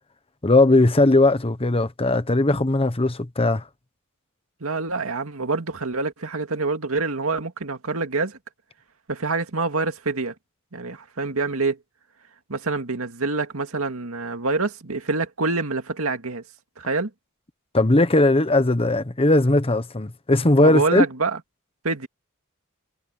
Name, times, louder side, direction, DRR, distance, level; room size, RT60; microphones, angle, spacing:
voice 1, 0.4-3.6 17.7-21.0, left 2 dB, 25° left, 1.1 m, -18 dB
voice 2, 4.6-8.4 9.1-10.3 10.7-11.8 12.5-16.4 16.8-17.1 20.6-21.4 21.8-22.1, right 3 dB, 75° right, 2.2 m, -26 dB
head